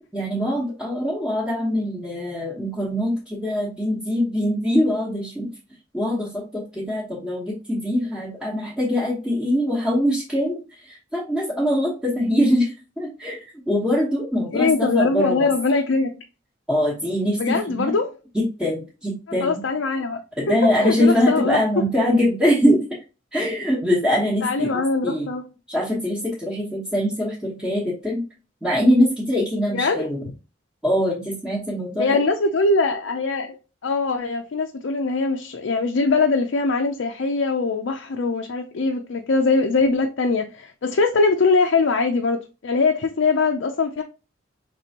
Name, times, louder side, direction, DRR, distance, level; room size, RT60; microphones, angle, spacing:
voice 1, 0.1-5.5 5.9-10.6 10.9-15.5 16.7-17.9 18.3-19.6 20.4-22.8 23.3-25.3 25.7-28.2 28.6-30.2 30.8-32.2, equal, ahead, 1.1 m, -23 dB
voice 2, 14.5-16.1 17.4-18.1 19.4-20.2 20.5-21.6 24.4-25.4 29.7-30.1 32.0-33.5 33.8-44.0, left 3 dB, 80° left, 0.5 m, -22 dB
5.2 x 3.3 x 2.8 m
head